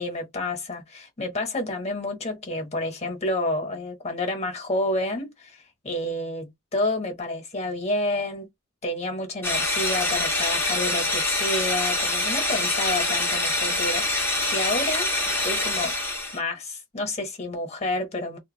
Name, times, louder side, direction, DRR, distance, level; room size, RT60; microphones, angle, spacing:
voice 1, 0.0-8.5 8.8-15.1 15.4-15.9 16.3-18.4, left 1 dB, 30° left, 1.0 m, -29 dB
sound 1, 9.4-16.4, left 2 dB, 10° left, 0.6 m, -25 dB
2.2 x 2.1 x 3.2 m
head